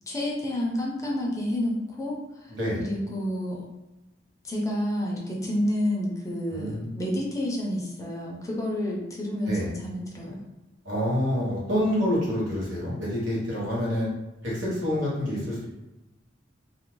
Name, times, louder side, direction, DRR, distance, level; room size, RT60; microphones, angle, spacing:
voice 1, 0.1-2.5 2.8-3.6 4.4-10.4, left 1 dB, 15° left, -3 dB, 0.5 m, -29 dB
voice 2, 2.5-2.8 6.5-6.9 9.5-9.7 10.8-14.1 14.4-15.6, equal, 70° right, -6 dB, 1.0 m, -27 dB
2.5 x 2.1 x 3.0 m, 0.98 s
head